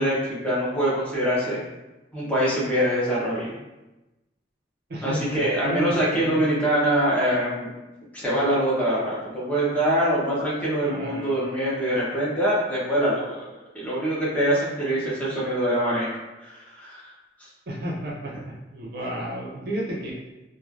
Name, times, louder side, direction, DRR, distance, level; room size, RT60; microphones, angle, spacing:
voice 1, 0.0-1.6 2.1-3.5 5.0-7.7 8.1-13.4 13.7-16.1 16.4-17.1 17.4-17.5, right 1 dB, 10° left, -8 dB, 0.7 m, -24 dB
voice 2, 4.9-6.4 10.8-11.4 17.7-20.2, right 1 dB, 60° right, -2 dB, 0.5 m, -32 dB
3.0 x 2.2 x 2.4 m, 1.0 s
head